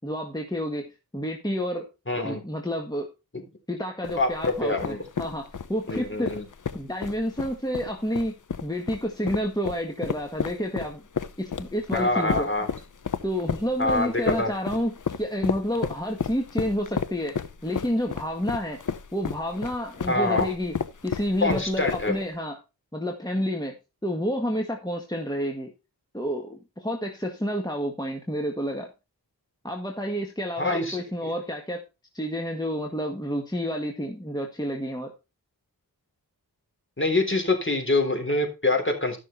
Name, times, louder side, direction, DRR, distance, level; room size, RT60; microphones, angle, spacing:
voice 1, 0.0-1.9 2.2-3.1 3.7-6.4 6.7-8.3 8.6-11.0 11.4-12.5 13.2-17.4 17.6-18.8 19.1-20.8 21.0-22.6 22.9-23.8 24.0-25.7 26.1-28.9 29.6-31.8 32.1-35.1, equal, 10° left, 2 dB, 1.8 m, -29 dB
voice 2, 2.1-2.4 4.2-4.3 4.6-5.0 5.9-6.4 11.9-12.7 13.8-14.5 20.1-20.5 21.4-22.2 30.6-31.3 37.0-39.2, left 2 dB, 30° left, 4 dB, 3.6 m, -25 dB
sound 1, 4.0-22.3, left 6 dB, 50° left, 0.9 m, -32 dB
13.0 x 6.3 x 4.2 m, 0.28 s
cardioid pair, 50°, 39 cm